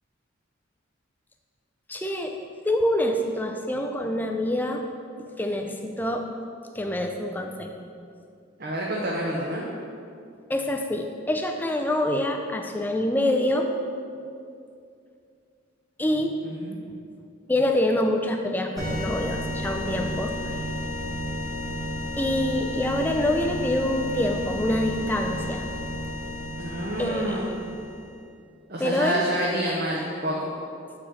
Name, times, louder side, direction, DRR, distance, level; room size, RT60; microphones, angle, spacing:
voice 1, 1.9-4.8 5.2-6.3 6.7-7.9 10.5-13.7 16.0-16.4 17.5-20.7 22.2-25.7 27.0-27.5 28.8-29.2, left 1 dB, 10° left, 3 dB, 0.4 m, -26 dB
voice 2, 8.6-9.6 16.4-16.8 26.6-27.5 28.7-30.6, right 1 dB, 45° right, -3 dB, 0.7 m, -28 dB
sound 1, 18.8-28.2, equal, 15° right, 1.2 m, -32 dB
8.3 x 4.9 x 3.7 m, 2.4 s
head